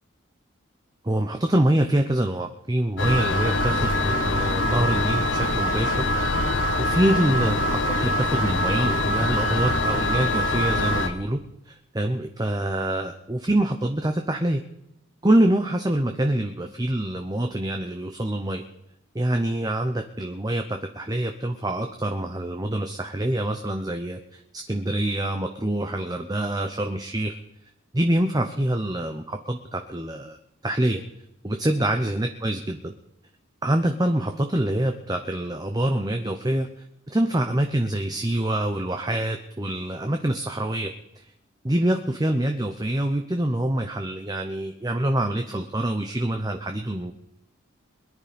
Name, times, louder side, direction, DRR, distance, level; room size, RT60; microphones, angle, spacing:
voice 1, 1.0-11.4 11.6-14.6 15.2-18.6 19.1-27.3 27.9-30.4 30.6-31.0 31.4-32.9 33.6-36.7 37.1-40.9 41.6-47.1, right 1 dB, 20° right, 5 dB, 0.9 m, -25 dB
sound 1, 3.0-11.1, left 1 dB, 65° left, 1.5 m, -24 dB
22.5 x 10.5 x 5.3 m, 0.80 s
head